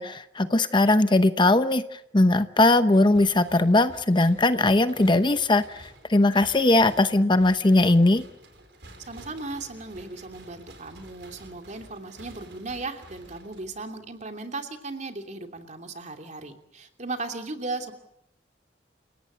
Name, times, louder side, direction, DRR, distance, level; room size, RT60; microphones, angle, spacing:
voice 1, 0.0-8.2, left 2 dB, 25° left, 11 dB, 0.9 m, -20 dB
sound 1, 2.9-14.1, right 1 dB, 75° right, 4.9 m, -50 dB
voice 2, 9.1-17.9, right 3 dB, 45° right, 5 dB, 2.9 m, -36 dB
29.5 x 17.5 x 8.1 m, 0.79 s
head